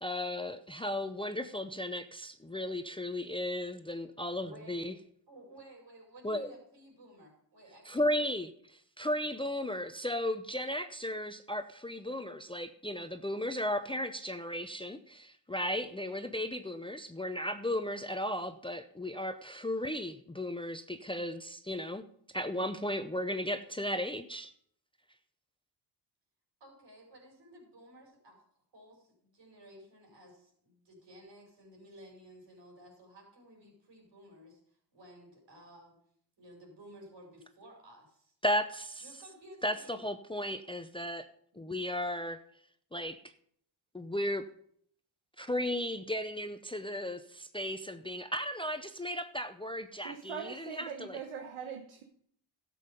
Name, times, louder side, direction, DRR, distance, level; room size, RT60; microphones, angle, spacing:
voice 1, 0.0-4.9 6.2-6.5 7.9-8.5 9.0-22.0 22.3-24.5 38.4-39.0 39.6-41.3 41.5-42.4 42.9-43.3 43.9-44.5 45.4-51.2, left 1 dB, 10° left, 9 dB, 0.6 m, -35 dB
voice 2, 4.4-5.0 5.3-8.2 26.6-28.4 28.7-35.9 36.4-38.3 39.0-40.0, equal, 65° right, 1 dB, 5.3 m, -55 dB
voice 3, 50.0-52.0, right 7 dB, 85° right, 3 dB, 1.2 m, -42 dB
13.0 x 7.7 x 5.2 m, 0.65 s
cardioid pair, 85°, 47 cm